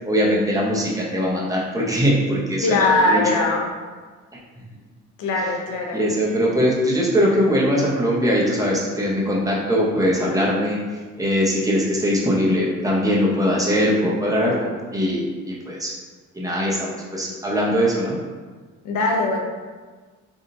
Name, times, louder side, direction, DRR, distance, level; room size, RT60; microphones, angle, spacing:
voice 1, 0.0-3.2 5.9-10.8 11.2-15.9 16.3-18.2, equal, 10° right, -4 dB, 0.9 m, -21 dB
voice 2, 2.6-3.6 5.2-6.0 18.8-19.4, left 2 dB, 85° left, 1 dB, 0.7 m, -20 dB
4.0 x 3.6 x 2.7 m, 1.4 s
cardioid pair, 90°, 30 cm